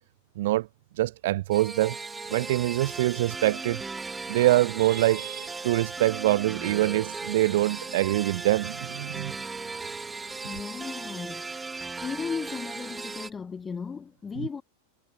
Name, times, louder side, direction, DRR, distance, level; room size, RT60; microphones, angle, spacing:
voice 1, 0.4-0.7 0.9-2.0 2.3-3.8 4.3-9.4, right 16 dB, 55° right, 0.4 m, -24 dB
sound 1, 1.5-13.3, right 4 dB, 10° right, 1.4 m, -37 dB
voice 2, 10.4-14.6, left 5 dB, 15° left, 0.7 m, -36 dB
figure-of-eight pair, 90°, 0 cm